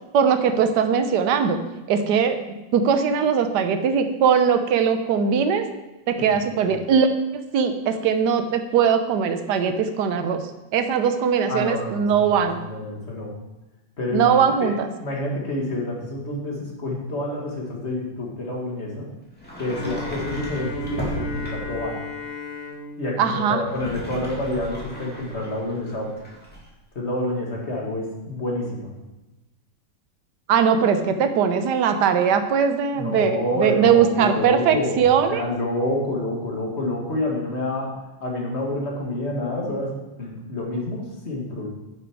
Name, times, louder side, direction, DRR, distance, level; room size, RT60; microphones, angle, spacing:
voice 1, 0.1-1.6 1.9-2.4 2.7-5.6 6.1-7.1 7.3-10.4 10.7-12.6 14.1-14.9 23.2-23.6 30.5-35.4, right 7 dB, 65° right, 8 dB, 1.4 m, -20 dB
voice 2, 11.5-13.3 14.0-14.7 15.0-19.1 19.6-22.0 23.0-26.1 26.9-28.9 32.9-37.9 38.2-39.9 40.2-41.7, left 1 dB, 35° left, -1 dB, 2.3 m, -28 dB
Sliding door, 19.4-21.9 23.5-26.7, equal, 5° left, 2.4 m, -35 dB
Bowed string instrument, 19.6-24.6, left 1 dB, 85° left, 2.4 m, -35 dB
10.5 x 7.3 x 4.7 m, 1.0 s
omnidirectional pair, 2.0 m